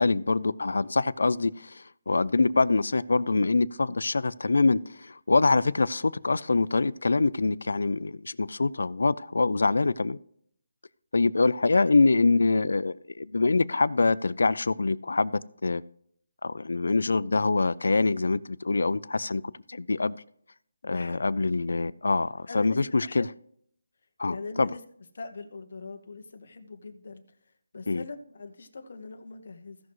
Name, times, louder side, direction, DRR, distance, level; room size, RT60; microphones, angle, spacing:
voice 1, 0.0-10.2 11.1-15.8 16.4-19.4 19.7-20.1 20.8-23.3 24.2-24.7 27.9-28.0, left 3 dB, 80° left, 0.4 m, -25 dB
voice 2, 20.8-21.2 22.5-23.2 24.3-24.8 25.1-27.4 27.7-29.8, left 4 dB, 55° left, 1.2 m, -42 dB
16.0 x 6.1 x 3.1 m
hypercardioid pair, 170°, 0 cm